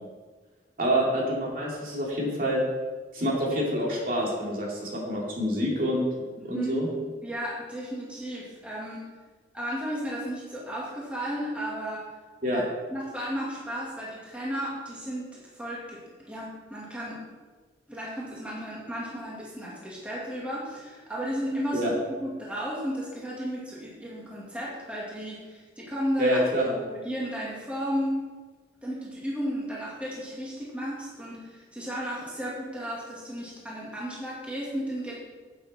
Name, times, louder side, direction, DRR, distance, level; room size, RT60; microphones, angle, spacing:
voice 1, 0.8-2.6 3.1-6.1 6.4-6.9 12.4-12.6 21.7-21.9 26.2-26.7, equal, 50° right, -3 dB, 2.5 m, -27 dB
voice 2, 6.4-6.9 7.2-9.0 9.5-12.1 12.5-12.7 12.9-17.3 17.9-26.4 26.8-28.2 28.8-35.1, equal, 5° right, -6 dB, 2.1 m, -34 dB
10.5 x 8.1 x 4.3 m, 1.3 s
head